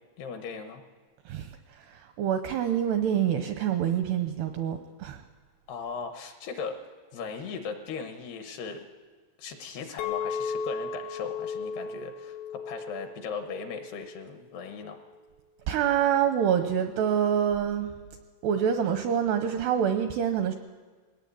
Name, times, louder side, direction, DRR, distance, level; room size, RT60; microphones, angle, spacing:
voice 1, 0.2-0.8 5.7-8.9 9.4-15.0, left 5 dB, 70° left, 6 dB, 2.7 m, -38 dB
voice 2, 1.3-5.2 15.7-17.9 18.4-20.6, right 9 dB, 80° right, 7 dB, 2.4 m, -26 dB
Chink clink, 10.0-15.2, left 5 dB, 90° left, 3.9 m, -36 dB
21.0 x 18.5 x 8.6 m, 1.5 s
omnidirectional pair, 5.7 m